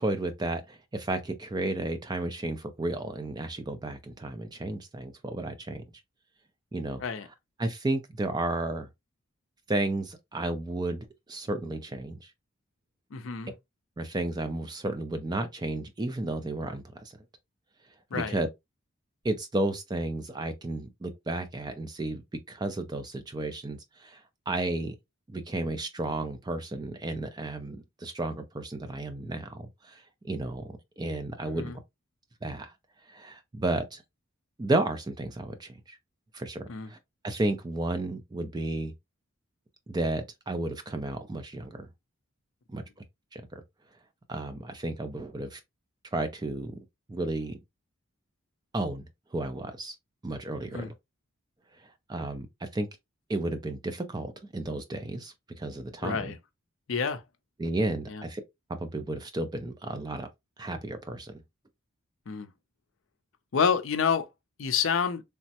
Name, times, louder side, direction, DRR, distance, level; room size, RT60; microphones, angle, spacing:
voice 1, 0.0-5.8 6.7-7.0 7.6-8.9 9.7-12.3 14.0-17.1 18.1-18.5 19.2-22.2 22.5-24.2 24.5-25.0 25.3-31.7 32.4-32.7 33.1-34.0 34.6-36.0 36.3-37.0 37.2-38.9 39.9-41.9 42.7-42.8 43.3-43.6 44.3-45.6 46.1-46.8 47.1-47.6 48.7-49.1 49.3-49.9 50.2-50.8 52.1-52.9 53.3-56.3 57.6-58.4 58.8-60.3 60.6-61.4, right 2 dB, 20° right, 0.3 m, -32 dB
voice 2, 13.1-13.5 18.1-18.4 31.5-31.8 36.7-36.9 50.7-50.9 56.0-56.4 56.9-57.2 58.1-58.2 62.3-62.5 63.5-64.3 64.6-65.2, left 6 dB, 65° left, 0.5 m, -28 dB
3.4 x 2.1 x 2.7 m
head